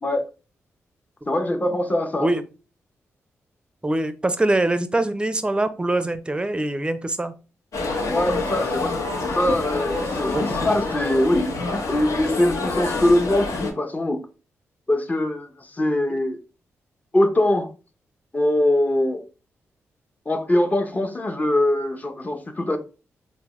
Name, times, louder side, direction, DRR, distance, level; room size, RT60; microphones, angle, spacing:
voice 1, 1.3-2.3 8.1-14.2 14.9-16.4 17.1-17.7 18.3-19.2 20.3-22.8, left 1 dB, 25° left, 0.7 m, -22 dB
voice 2, 3.8-7.3 10.3-10.5, right 2 dB, 15° right, 0.5 m, -23 dB
sound 1, 7.7-13.7, left 3 dB, 65° left, 0.8 m, -27 dB
3.4 x 2.1 x 3.0 m
supercardioid pair, 50°, 6 cm